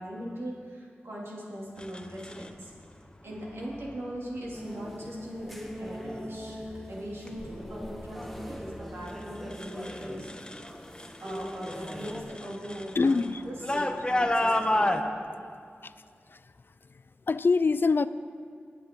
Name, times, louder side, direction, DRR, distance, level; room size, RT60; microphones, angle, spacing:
voice 1, 0.0-2.7 3.2-6.6 6.9-10.3 11.2-15.1, equal, 75° right, -5 dB, 2.6 m, -40 dB
sound 1, 1.8-2.5 3.6-4.0 4.5-5.0 5.5-6.0 6.4-10.7 10.9-15.0, left 1 dB, 20° left, 0.9 m, -32 dB
sound 2, 4.5-12.2, equal, ahead, 1.2 m, -41 dB
voice 2, 12.9-13.4 14.7-14.8 15.8-15.9 16.3-16.4 16.9-18.1, left 4 dB, 55° left, 14 dB, 0.4 m, -25 dB
20.5 x 7.6 x 3.7 m, 2.3 s
cardioid pair, 40°, 4 cm